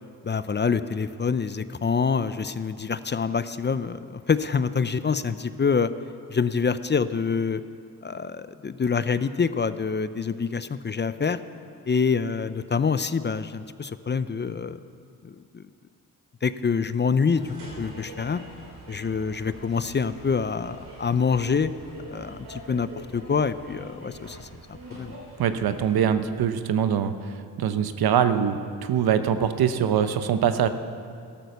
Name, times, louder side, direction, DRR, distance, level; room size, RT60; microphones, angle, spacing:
voice 1, 0.2-5.9 6.3-7.6 8.0-11.4 11.9-14.8 15.2-15.6 16.4-18.4 18.9-21.7 22.1-25.1, left 5 dB, 30° left, 13 dB, 0.6 m, -26 dB
sound 1, 17.2-26.1, right 1 dB, 85° right, 3.7 m, -44 dB
voice 2, 25.4-27.1 27.6-30.7, right 8 dB, 70° right, 10 dB, 0.9 m, -23 dB
13.0 x 13.0 x 6.7 m, 2.4 s
supercardioid pair, 55°, 38 cm